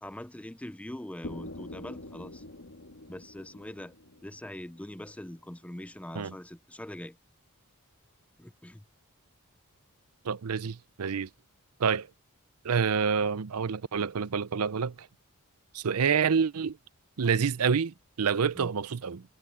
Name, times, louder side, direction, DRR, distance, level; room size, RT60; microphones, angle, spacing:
voice 1, 0.0-2.4 3.1-3.9 4.2-7.2 8.4-8.8 18.5-18.7, left 1 dB, 5° left, 0.5 m, -42 dB
sound 1, 1.2-5.1, left 1 dB, 65° left, 2.3 m, -45 dB
voice 2, 10.2-11.3 11.8-12.1 12.6-15.1 15.7-16.8 17.2-19.2, right 6 dB, 85° right, 0.6 m, -27 dB
head